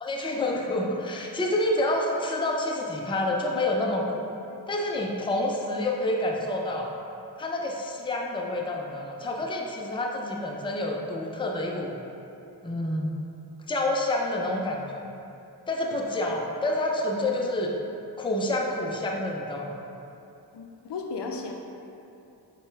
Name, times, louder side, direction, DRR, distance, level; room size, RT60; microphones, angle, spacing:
voice 1, 0.0-4.3 4.7-6.9 7.4-12.0 12.6-13.2 13.7-15.1 15.7-17.7 18.2-19.8, left 1 dB, 10° left, -1 dB, 0.5 m, -28 dB
voice 2, 20.5-21.5, left 4 dB, 70° left, 1 dB, 0.6 m, -35 dB
5.4 x 2.3 x 3.2 m, 2.7 s
cardioid pair, 45°, 42 cm